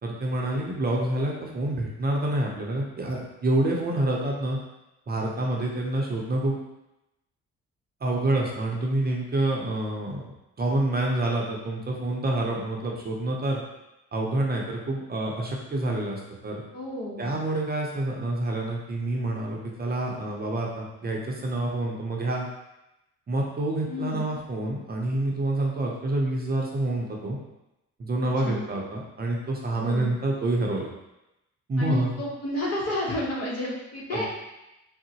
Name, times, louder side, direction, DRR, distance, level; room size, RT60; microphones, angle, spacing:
voice 1, 0.0-4.6 5.1-6.6 8.0-10.2 10.6-13.6 14.1-16.6 17.2-22.5 23.3-27.4 28.0-30.9 31.7-32.1 34.1-34.3, right 1 dB, 30° right, -1 dB, 0.6 m, -27 dB
voice 2, 16.7-17.3 23.9-24.3 28.2-28.7 29.8-30.1 31.8-34.3, left 1 dB, 55° left, -3 dB, 1.0 m, -31 dB
3.7 x 2.1 x 2.8 m, 0.93 s
cardioid pair, 90°, 30 cm